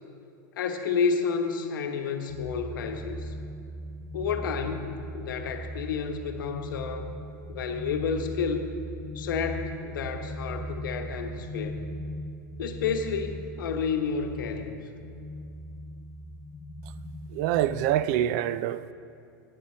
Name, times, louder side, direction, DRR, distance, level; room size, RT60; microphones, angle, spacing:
voice 1, 0.6-3.3 4.1-4.9 5.1-7.1 7.5-8.7 9.1-11.8 12.6-14.8, left 5 dB, 90° left, 1.0 m, -30 dB
sound 1, 2.3-18.0, equal, 15° left, 0.5 m, -39 dB
voice 2, 17.3-18.9, right 12 dB, 55° right, 0.4 m, -26 dB
10.0 x 9.6 x 4.3 m
supercardioid pair, 135°, 11 cm